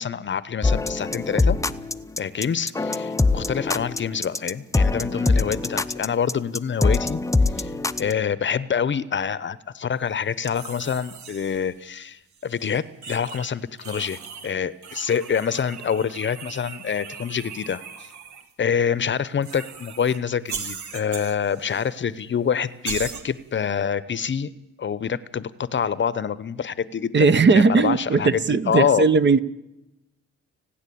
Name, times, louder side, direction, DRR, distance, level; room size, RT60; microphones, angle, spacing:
voice 1, 0.0-1.6 2.2-7.2 7.6-7.7 8.0-18.1 18.6-24.5 24.8-29.0, left 7 dB, 40° left, 18 dB, 0.9 m, -26 dB
sound 1, 0.6-8.1, left 3 dB, 10° left, 0.7 m, -23 dB
sound 2, 10.4-11.7 12.3-13.5 13.8-14.6 14.8-18.5 19.4-20.2 20.5-21.9 22.2-22.3 22.8-23.2, right 6 dB, 70° right, 2.1 m, -38 dB
voice 2, 27.1-29.4, right 4 dB, 40° right, 14 dB, 0.9 m, -18 dB
29.5 x 10.0 x 8.5 m, 0.92 s
cardioid pair, 90°, 30 cm